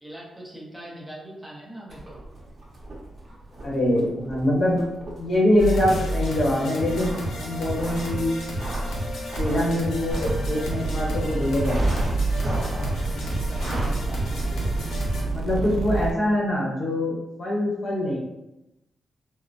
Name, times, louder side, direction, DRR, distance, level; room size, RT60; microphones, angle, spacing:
voice 1, 0.0-2.2 13.0-15.0 15.6-16.0, right 1 dB, 10° right, -5 dB, 0.8 m, -42 dB
sound 1, 1.9-11.1 11.6-13.0 13.5-14.0 14.3-14.4, right 1 dB, 45° right, 0.9 m, -34 dB
voice 2, 3.6-4.8 5.2-8.3 9.4-11.9 15.2-18.2, left 1 dB, 55° left, -3 dB, 0.9 m, -24 dB
sound 2, 5.6-15.2, right 1 dB, 85° left, 0.7 m, -31 dB
sound 3, 10.1-16.1, right 3 dB, 70° right, 0.4 m, -29 dB
3.6 x 2.0 x 2.6 m, 0.93 s
cardioid pair, 115°, 0 cm